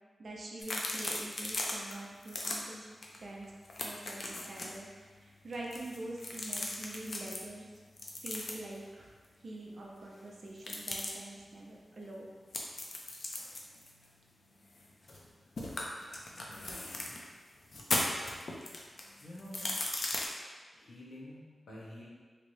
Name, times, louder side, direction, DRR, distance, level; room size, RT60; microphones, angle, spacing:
voice 1, 0.2-2.8 3.2-3.5 3.8-4.9 5.2-7.7 8.2-9.1 9.4-12.3, right 1 dB, 50° right, -2 dB, 0.5 m, -45 dB
sound 1, 0.6-1.9 2.2-2.6 3.0-3.2 3.4-4.8 5.5-7.4 8.0-8.8 10.6-11.1 12.5-15.3 15.6-17.2 17.7-20.2, left 2 dB, 45° left, 0.4 m, -37 dB
voice 2, 16.5-17.1 19.2-19.7 20.7-22.1, left 1 dB, 75° left, -5 dB, 0.8 m, -49 dB
3.2 x 2.9 x 2.6 m, 1.5 s
wide cardioid pair, 180°, 0 cm